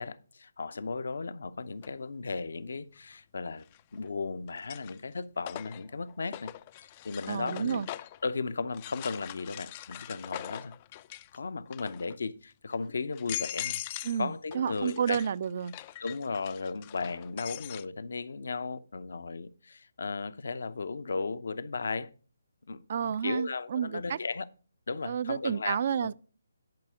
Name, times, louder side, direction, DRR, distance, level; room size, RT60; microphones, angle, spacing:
voice 1, 0.0-3.7 3.9-6.5 7.0-7.8 8.2-10.7 11.3-13.8 14.2-15.2 16.0-22.1 22.7-24.5 24.9-26.1, left 4 dB, 60° left, 0.7 m, -35 dB
sound 1, 1.8-1.9 3.6-4.1 4.5-8.2 8.7-11.4 11.7-12.2 12.7-12.8 13.1-14.2 14.5-17.9, left 13 dB, 30° left, 0.4 m, -42 dB
voice 2, 7.3-7.9 14.0-15.7 22.9-24.2 25.0-26.1, right 8 dB, 45° right, 0.4 m, -30 dB
10.5 x 4.8 x 6.7 m
figure-of-eight pair, 145°, 0 cm